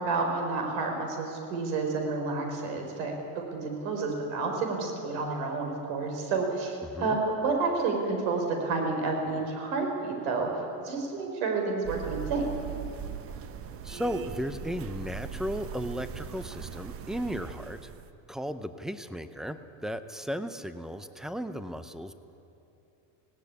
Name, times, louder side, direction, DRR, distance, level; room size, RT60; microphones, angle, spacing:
voice 1, 0.0-12.5, right 3 dB, 70° right, 2 dB, 4.5 m, -30 dB
voice 2, 6.8-7.2 13.8-17.9 18.3-22.1, equal, ahead, 11 dB, 0.5 m, -35 dB
sound 1, 11.8-18.1, right 8 dB, 30° right, 0.9 m, -40 dB
18.0 x 17.0 x 9.7 m, 2.9 s
cardioid pair, 160°, 42 cm